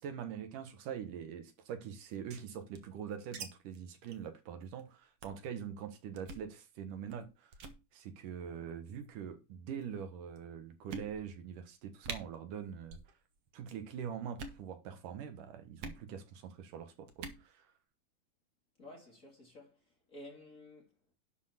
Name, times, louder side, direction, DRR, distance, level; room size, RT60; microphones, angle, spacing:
voice 1, 0.0-7.5 7.9-13.0 13.5-17.7, right 8 dB, 85° right, 3.1 m, -43 dB
sound 1, 2.0-3.5 3.7-3.8 4.1-4.3 4.6-4.8 5.2-5.5 6.2-6.5 7.1-7.3 7.5-7.8 8.7-9.1 9.8-9.9 10.4-10.5 10.9-11.4 11.7-11.8 12.0-12.2 12.8-13.1 13.4-13.8 14.3-14.6 15.8-16.0 17.1-17.4, right 4 dB, 55° right, 2.1 m, -45 dB
voice 2, 18.8-19.8 20.1-21.1, left 1 dB, 25° left, 2.7 m, -53 dB
11.5 x 4.6 x 5.9 m
omnidirectional pair, 3.7 m